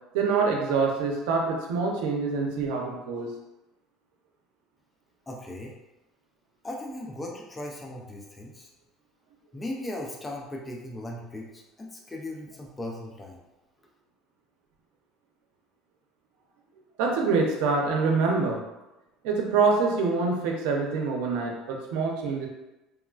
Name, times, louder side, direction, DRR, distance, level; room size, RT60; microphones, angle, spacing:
voice 1, 0.1-3.3 17.0-18.6 19.2-22.5, right 4 dB, 85° right, 1 dB, 0.6 m, -25 dB
voice 2, 5.3-5.7 6.6-8.7 9.5-13.4, left 1 dB, 10° left, -1 dB, 0.3 m, -38 dB
3.1 x 2.3 x 2.3 m, 1.0 s
cardioid pair, 160°, 0 cm